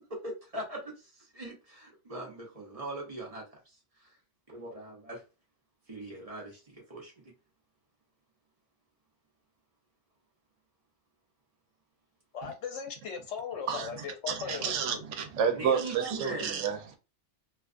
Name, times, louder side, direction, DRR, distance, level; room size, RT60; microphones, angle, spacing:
voice 1, 0.2-3.4 4.0-4.1 4.5-5.2 5.9-7.2 15.5-16.5, right 1 dB, 35° right, 0.7 m, -41 dB
voice 2, 12.3-15.0, left 6 dB, 75° left, 0.9 m, -38 dB
voice 3, 13.7-17.0, right 7 dB, 80° right, 0.9 m, -31 dB
2.4 x 2.3 x 2.4 m
omnidirectional pair, 1.3 m